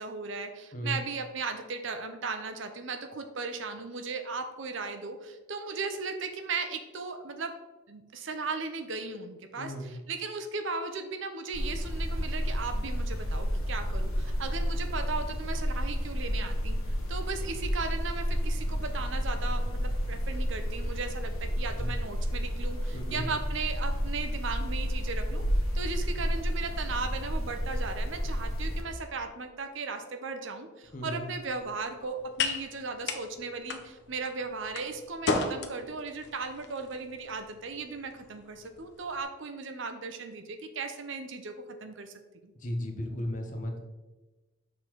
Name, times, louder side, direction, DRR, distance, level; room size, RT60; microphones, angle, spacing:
voice 1, 0.0-7.5 7.9-16.8 17.1-25.4 25.7-41.5 41.8-42.1 42.4-42.5, right 4 dB, 60° right, 7 dB, 0.6 m, -37 dB
voice 2, 9.6-9.9 21.7-21.9 22.9-23.3 30.9-31.2 42.5-43.8, left 1 dB, 40° left, 3 dB, 0.9 m, -35 dB
sound 1, 11.5-28.8, equal, 85° left, 1.2 m, -31 dB
sound 2, 30.8-39.2, left 4 dB, 55° left, 0.6 m, -37 dB
6.9 x 3.9 x 4.5 m, 1.1 s
head